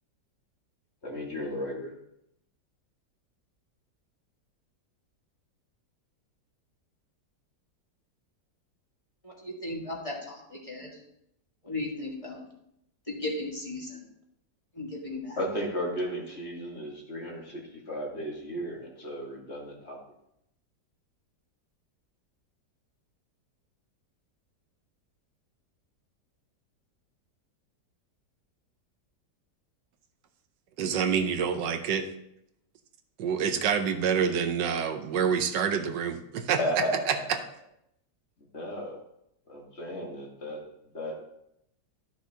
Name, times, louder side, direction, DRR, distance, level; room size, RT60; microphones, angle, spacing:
voice 1, 1.0-1.9 15.4-20.0 36.6-37.3 38.5-39.0 39.5-40.6 40.9-41.2, equal, 40° left, -2 dB, 1.7 m, -34 dB
voice 2, 9.2-10.9 11.6-12.4 13.1-14.0 14.7-15.4, left 2 dB, 20° left, -3 dB, 1.5 m, -36 dB
voice 3, 30.8-32.0 33.2-36.6 37.1-37.4, right 7 dB, 80° right, 7 dB, 1.4 m, -27 dB
12.5 x 6.2 x 2.8 m, 0.78 s
omnidirectional pair, 1.9 m